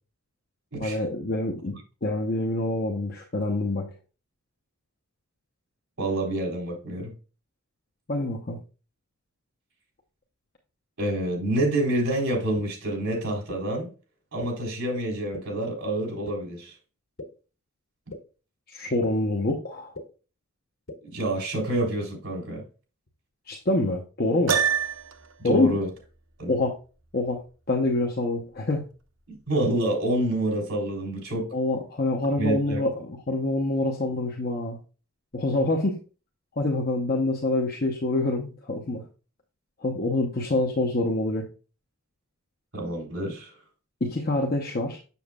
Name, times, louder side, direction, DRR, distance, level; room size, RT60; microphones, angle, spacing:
voice 1, 0.8-3.8 8.1-8.6 18.7-19.9 23.5-24.6 25.4-25.8 26.5-26.7 27.1-27.4 27.7-28.8 31.5-34.8 35.3-36.0 36.6-39.0 39.8-41.5 44.0-45.0, left 2 dB, 45° left, 0.8 m, -26 dB
voice 2, 6.0-7.1 11.0-13.9 14.3-16.8 21.0-22.6 25.4-25.9 26.4-26.5 29.3-31.5 32.4-32.8 42.7-43.5, right 1 dB, 85° right, 3.6 m, -27 dB
sound 1, 12.6-12.7 13.5-13.6 14.4-14.5 15.3-15.4 16.3-16.4 17.2-17.3 18.1-18.2 19.0-19.1 19.9-20.0 20.9-21.0, left 2 dB, 75° left, 1.7 m, -37 dB
Piano, 24.5-25.3, right 7 dB, 65° right, 0.7 m, -25 dB
7.0 x 7.0 x 2.4 m
head